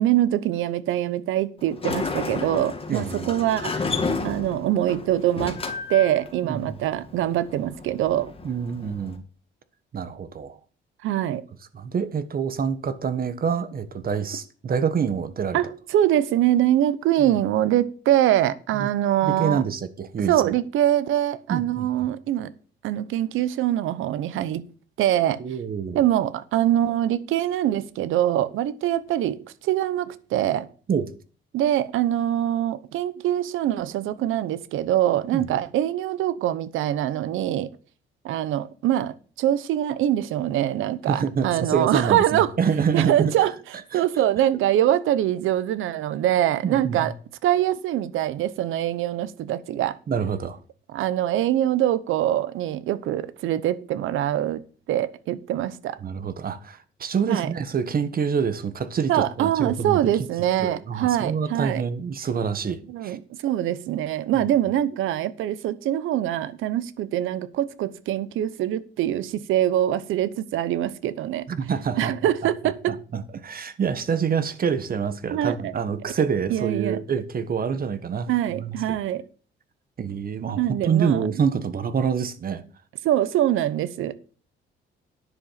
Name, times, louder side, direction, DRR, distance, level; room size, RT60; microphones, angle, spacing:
voice 1, 0.0-3.9 4.2-5.6 5.9-8.3 11.0-11.4 15.5-19.6 20.3-22.5 22.8-24.6 25.0-25.4 25.9-30.7 31.5-37.7 38.2-42.5 42.9-43.5 43.9-47.1 47.4-50.0 50.9-54.6 54.9-56.0 57.3-57.5 59.1-61.8 62.9-71.5 72.0-73.0 75.3-75.7 76.5-77.0 78.3-79.2 80.6-81.2 83.0-84.2, right 12 dB, 85° right, 0.9 m, -24 dB
Sliding door, 1.6-9.2, left 4 dB, 30° left, 2.3 m, -32 dB
voice 2, 2.9-3.3 6.5-6.8 8.4-9.2 9.9-10.6 11.7-15.6 18.7-18.9 19.2-20.6 21.5-21.9 25.4-26.0 30.9-31.1 35.3-35.5 41.1-43.3 43.9-44.0 46.6-47.1 50.1-50.6 56.0-60.3 60.6-63.2 64.3-64.5 71.5-72.1 72.9-79.0 80.0-82.6, right 6 dB, 45° right, 1.4 m, -26 dB
10.0 x 7.1 x 5.8 m
cardioid pair, 90°, 20 cm